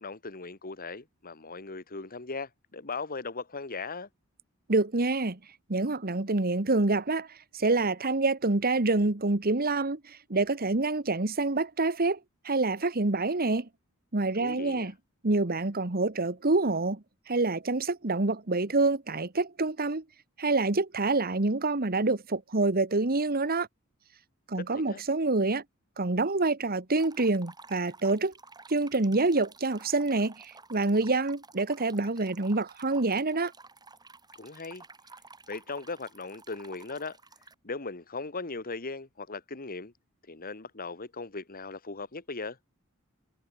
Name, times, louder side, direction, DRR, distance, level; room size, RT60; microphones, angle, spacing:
voice 1, 0.0-4.1 14.4-14.9 24.6-25.0 34.4-34.8 35.5-37.2 37.6-39.9 40.3-42.6, left 3 dB, 45° left, 1.8 m, -38 dB
voice 2, 4.7-5.4 5.7-12.2 12.4-13.7 14.1-14.9 15.2-20.0 20.4-23.7 24.5-25.6 26.0-28.3 28.7-33.5, right 3 dB, 45° right, 1.5 m, -27 dB
sound 1, 27.0-37.5, right 3 dB, 20° right, 7.8 m, -52 dB
head